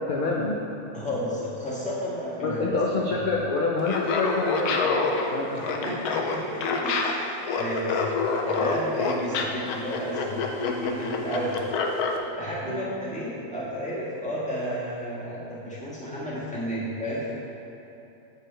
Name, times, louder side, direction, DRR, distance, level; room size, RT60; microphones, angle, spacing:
voice 1, 0.1-0.6 2.4-6.0 12.6-12.8, left 3 dB, 55° left, -3 dB, 0.5 m, -27 dB
voice 2, 0.9-2.7 5.5-11.6 12.4-17.4, equal, 5° left, -9 dB, 1.6 m, -32 dB
Laughter, 3.8-12.2, left 4 dB, 90° left, 1.2 m, -27 dB
7.6 x 7.5 x 3.3 m, 2.9 s
omnidirectional pair, 1.5 m